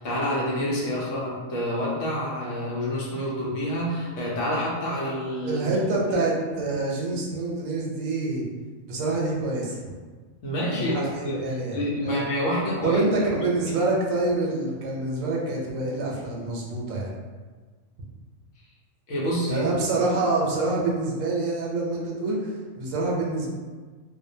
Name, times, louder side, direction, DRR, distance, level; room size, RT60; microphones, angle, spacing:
voice 1, 0.0-6.2 10.4-13.7 19.1-19.6 19.9-20.1, equal, 70° left, -5 dB, 1.0 m, -28 dB
voice 2, 5.4-8.4 8.9-9.9 10.7-12.2 12.8-17.1 19.5-23.5, right 2 dB, 80° right, -3 dB, 1.0 m, -26 dB
2.5 x 2.1 x 2.6 m, 1.4 s
omnidirectional pair, 1.4 m